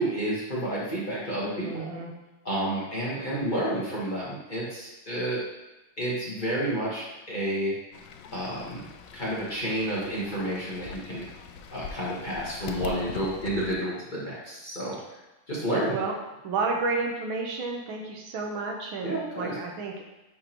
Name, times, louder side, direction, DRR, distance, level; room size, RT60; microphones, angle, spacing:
voice 1, 0.0-1.9 2.4-5.4 6.0-7.7 8.3-8.8 9.1-11.3 11.7-15.0 15.5-15.9 19.0-19.6, right 1 dB, 25° left, -8 dB, 1.4 m, -30 dB
voice 2, 1.6-2.1 15.9-16.1 16.4-19.9, right 3 dB, 80° right, 1 dB, 1.7 m, -31 dB
Fowl / Bird, 7.9-13.7, left 7 dB, 75° left, 1.1 m, -43 dB
10.5 x 3.7 x 3.0 m, 1.0 s
omnidirectional pair, 2.2 m